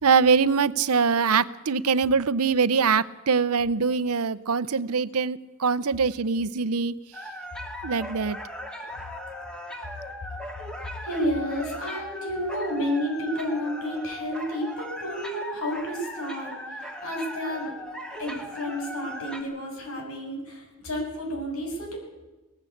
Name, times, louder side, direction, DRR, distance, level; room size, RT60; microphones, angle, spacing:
voice 1, 0.0-6.9 7.8-8.4, right 5 dB, 90° right, 18 dB, 0.7 m, -23 dB
sound 1, 7.1-19.4, equal, 5° left, 2.1 m, -38 dB
voice 2, 11.0-17.7 18.2-22.0, equal, 75° left, 1 dB, 7.1 m, -31 dB
19.0 x 15.5 x 8.6 m, 1.2 s
head